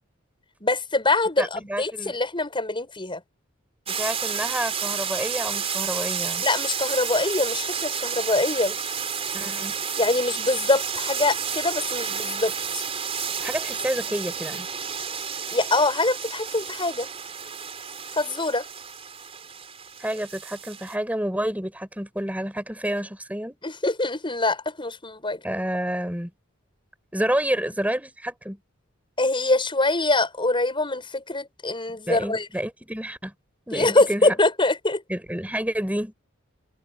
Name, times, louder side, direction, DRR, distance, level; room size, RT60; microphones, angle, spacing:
voice 1, 0.6-3.2 6.4-8.8 10.0-12.8 15.5-17.1 18.1-18.7 23.6-25.4 29.2-32.5 33.7-35.0, left 2 dB, 25° left, 6.7 m, -24 dB
voice 2, 1.4-2.1 3.9-6.4 9.3-9.7 13.4-14.7 20.0-23.6 25.4-26.3 27.1-28.6 32.1-33.3 33.7-34.4 35.1-36.1, right 1 dB, 5° right, 6.3 m, -29 dB
sound 1, 3.9-20.9, right 7 dB, 30° right, 4.0 m, -31 dB
open air
head